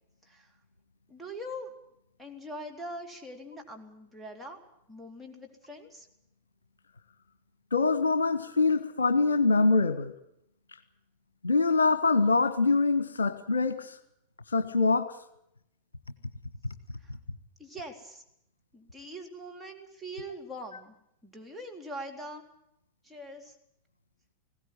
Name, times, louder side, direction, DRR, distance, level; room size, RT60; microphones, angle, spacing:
voice 1, 1.1-1.7 2.2-4.6 4.9-6.1 17.0-17.1 17.6-18.2 18.7-20.9 21.2-22.4 23.0-23.6, equal, ahead, -1 dB, 3.6 m, -42 dB
voice 2, 7.7-10.1 11.4-13.9 14.5-15.1, left 3 dB, 75° left, 11 dB, 1.2 m, -24 dB
20.0 x 16.5 x 9.9 m, 0.79 s
figure-of-eight pair, 90°, 0 cm